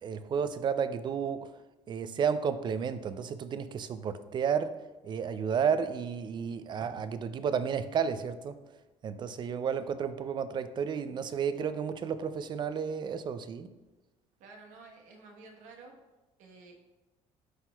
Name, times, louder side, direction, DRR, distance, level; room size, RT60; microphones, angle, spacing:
voice 1, 0.0-1.5 1.9-4.7 5.0-8.6 9.0-13.7, right 7 dB, 35° right, 13 dB, 0.4 m, -32 dB
voice 2, 14.4-15.9 16.4-16.8, right 3 dB, 80° right, 1 dB, 1.2 m, -52 dB
11.0 x 4.3 x 2.3 m, 1.1 s
cardioid pair, 115°, 13 cm